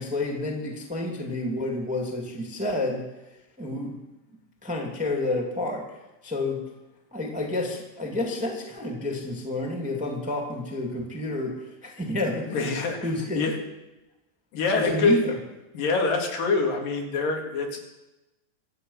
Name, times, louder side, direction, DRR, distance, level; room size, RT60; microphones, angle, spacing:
voice 1, 0.0-3.0 3.6-4.0 4.6-5.9 6.2-6.6 7.1-12.6 13.0-13.5 14.7-15.4, left 2 dB, 5° right, 1 dB, 1.5 m, -29 dB
voice 2, 12.5-13.1 13.4-13.6 14.5-15.2 15.7-17.8, left 4 dB, 80° left, 1 dB, 3.9 m, -25 dB
24.5 x 8.5 x 5.6 m, 1.0 s
omnidirectional pair, 3.9 m